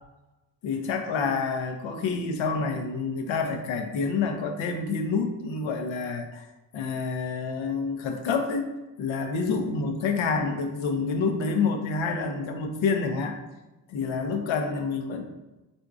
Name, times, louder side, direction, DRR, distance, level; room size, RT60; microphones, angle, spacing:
voice 1, 0.6-6.5 6.7-8.7 9.0-13.4 13.9-15.2, left 4 dB, 65° left, 6 dB, 0.6 m, -28 dB
4.4 x 2.6 x 2.4 m, 1.1 s
hypercardioid pair, 40°, 50 cm